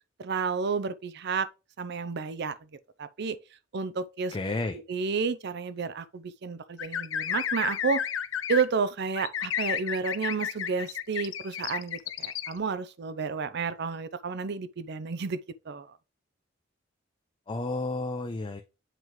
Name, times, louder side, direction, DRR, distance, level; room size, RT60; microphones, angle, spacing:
voice 1, 0.2-1.5 1.8-2.6 3.0-3.4 3.7-4.4 4.9-8.0 8.5-15.4 15.7-15.9, right 5 dB, 60° right, 0.5 m, -31 dB
voice 2, 4.3-4.8 17.5-18.6, left 2 dB, 25° left, 0.5 m, -31 dB
sound 1, 6.8-8.6 9.2-12.5, left 9 dB, 85° left, 0.5 m, -32 dB
7.6 x 3.1 x 4.6 m
head